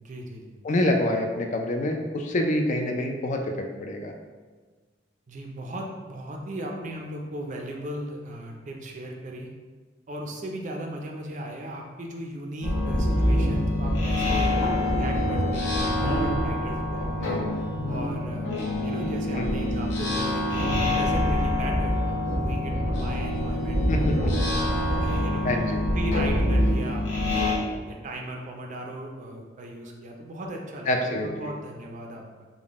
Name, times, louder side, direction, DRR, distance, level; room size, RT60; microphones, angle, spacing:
voice 1, 0.0-0.6 5.3-9.5 10.1-14.6 15.0-17.4 17.9-18.5 18.8-24.1 24.6-25.5 25.9-27.5 27.9-32.5, right 1 dB, 40° right, 1 dB, 0.4 m, -37 dB
voice 2, 0.6-4.1 19.4-19.5 23.9-24.3 25.4-25.8 30.9-31.5, left 1 dB, 40° left, 3 dB, 0.4 m, -26 dB
sound 1, 12.6-27.6, left 1 dB, 70° left, 0.9 m, -25 dB
3.6 x 2.1 x 3.5 m, 1.4 s
head